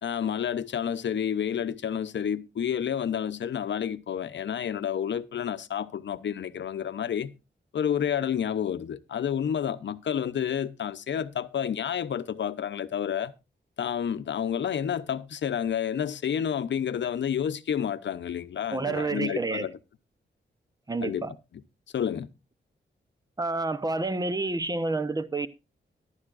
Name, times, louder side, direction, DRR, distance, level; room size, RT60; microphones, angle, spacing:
voice 1, 0.0-7.3 7.7-13.3 13.8-19.8 21.0-21.3 21.9-22.3, left 8 dB, 70° left, 0.8 m, -30 dB
voice 2, 18.7-19.7 20.9-21.3 23.4-25.5, right 3 dB, 20° right, 0.9 m, -29 dB
14.5 x 11.5 x 2.5 m
wide cardioid pair, 120°, 19 cm